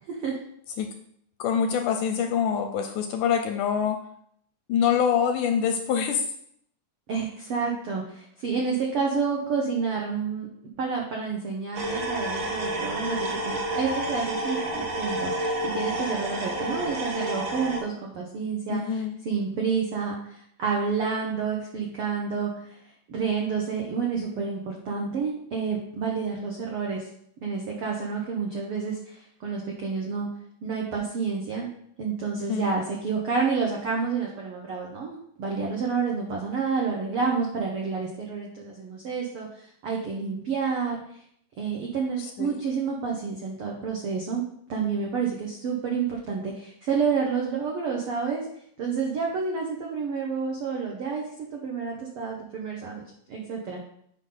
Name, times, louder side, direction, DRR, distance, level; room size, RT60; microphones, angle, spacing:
voice 1, 1.4-4.0 4.7-6.3 18.7-19.2 32.3-32.8 42.2-42.6, left 7 dB, 80° left, 6 dB, 1.9 m, -25 dB
voice 2, 7.1-10.5 10.8-22.8 23.1-27.1 27.4-30.3 30.6-31.7 32.0-41.0 41.6-44.4 44.7-48.4 48.8-51.2 51.5-53.0 53.3-53.8, right 5 dB, 80° right, -1 dB, 1.2 m, -29 dB
sound 1, 11.7-17.8, right 1 dB, 60° right, 1.8 m, -30 dB
8.1 x 5.4 x 3.9 m, 0.69 s
omnidirectional pair, 4.0 m